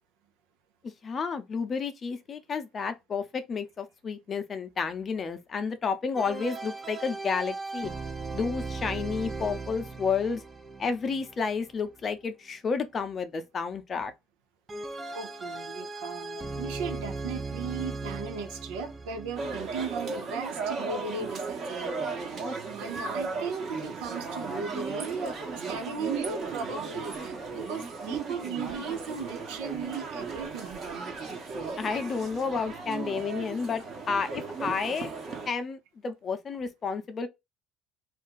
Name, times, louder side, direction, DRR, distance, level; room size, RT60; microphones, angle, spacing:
voice 1, 1.0-7.9 8.3-10.4 10.8-14.1 31.8-35.1 35.5-35.8 36.0-37.3, left 5 dB, 40° left, 0.6 m, -31 dB
sound 1, 6.2-12.3 14.7-20.1, right 3 dB, 30° right, 0.6 m, -38 dB
voice 2, 15.1-30.8, right 5 dB, 80° right, 0.6 m, -37 dB
sound 2, 19.4-35.5, right 4 dB, 50° right, 1.1 m, -36 dB
2.5 x 2.3 x 3.7 m
hypercardioid pair, 65°, 0 cm